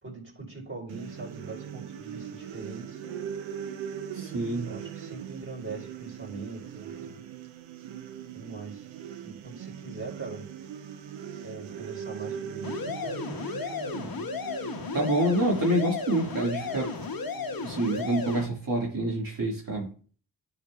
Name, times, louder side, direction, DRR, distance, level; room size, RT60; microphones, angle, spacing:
voice 1, 0.0-3.0 4.6-7.2 8.3-8.9 9.2-10.4 11.4-14.3, right 3 dB, 25° right, 3.5 m, -42 dB
sound 1, 0.9-18.3, right 9 dB, 85° right, 0.7 m, -40 dB
voice 2, 4.1-4.7 14.9-16.9 17.6-19.9, right 1 dB, 45° right, 2.0 m, -27 dB
sound 2, 12.6-18.5, left 5 dB, 50° left, 0.8 m, -34 dB
9.8 x 5.2 x 2.3 m
cardioid pair, 45°, 45 cm